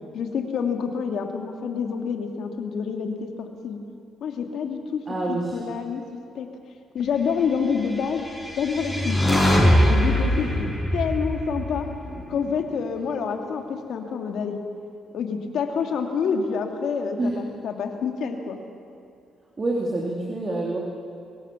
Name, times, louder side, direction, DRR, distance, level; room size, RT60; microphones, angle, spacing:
voice 1, 0.1-3.8 4.2-5.0 5.3-6.0 6.3-6.5 6.9-8.3 8.6-9.4 9.8-11.9 12.3-14.6 15.1-18.6, left 6 dB, 70° left, 4 dB, 2.5 m, -27 dB
voice 2, 5.1-5.6 17.2-17.4 19.6-20.8, right 2 dB, 30° right, -2 dB, 3.2 m, -26 dB
sound 1, 8.2-12.5, equal, ahead, 5.7 m, -22 dB
24.0 x 18.5 x 7.2 m, 2.4 s
cardioid pair, 90°, 0 cm